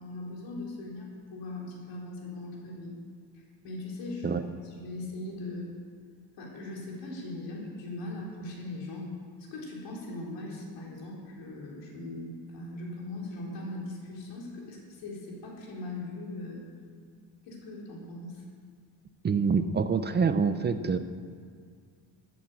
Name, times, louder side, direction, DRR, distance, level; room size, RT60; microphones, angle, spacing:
voice 1, 0.0-2.9 3.3-5.7 6.4-9.1 9.5-16.6 17.5-18.4, left 2 dB, 85° left, -3 dB, 4.0 m, -40 dB
voice 2, 19.2-21.0, right 5 dB, 25° right, 10 dB, 0.5 m, -26 dB
13.5 x 8.6 x 8.1 m, 2.1 s
cardioid pair, 150°, 42 cm